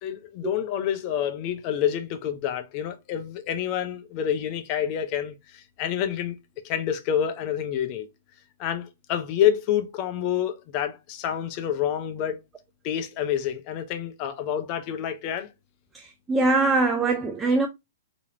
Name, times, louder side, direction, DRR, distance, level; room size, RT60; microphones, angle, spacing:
voice 1, 0.0-6.4 6.6-8.1 8.6-12.4 12.8-15.5, left 9 dB, 35° left, 0.8 m, -28 dB
voice 2, 15.9-17.7, right 3 dB, 10° right, 0.4 m, -22 dB
3.7 x 3.0 x 2.8 m
hypercardioid pair, 140°, 0 cm